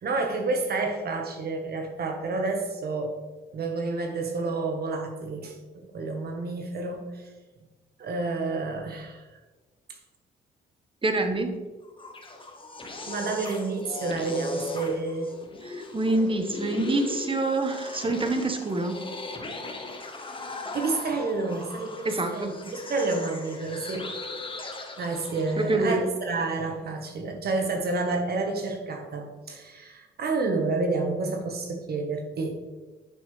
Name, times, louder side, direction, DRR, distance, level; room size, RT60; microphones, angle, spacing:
voice 1, 0.0-3.1 3.5-7.3 8.0-9.2 12.8-15.3 20.7-24.1 25.0-32.5, right 3 dB, 55° right, 3 dB, 1.4 m, -29 dB
voice 2, 11.0-11.6 15.6-19.1 22.0-22.5 25.6-26.1, right 2 dB, 25° right, 6 dB, 1.4 m, -26 dB
sound 1, 11.8-26.0, left 2 dB, 25° left, 1.4 m, -38 dB
10.5 x 6.1 x 3.4 m, 1.2 s
supercardioid pair, 60°, 19 cm